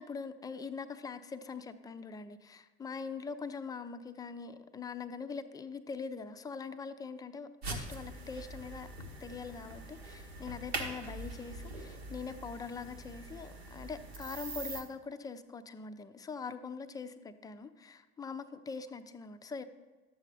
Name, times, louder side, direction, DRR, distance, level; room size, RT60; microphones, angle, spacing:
voice 1, 0.0-8.9 9.2-19.6, left 5 dB, 10° left, 10 dB, 0.4 m, -43 dB
sound 1, 7.6-14.8, right 2 dB, 80° right, 1.1 m, -43 dB
11.5 x 7.4 x 3.2 m, 1.3 s
figure-of-eight pair, 70°, 31 cm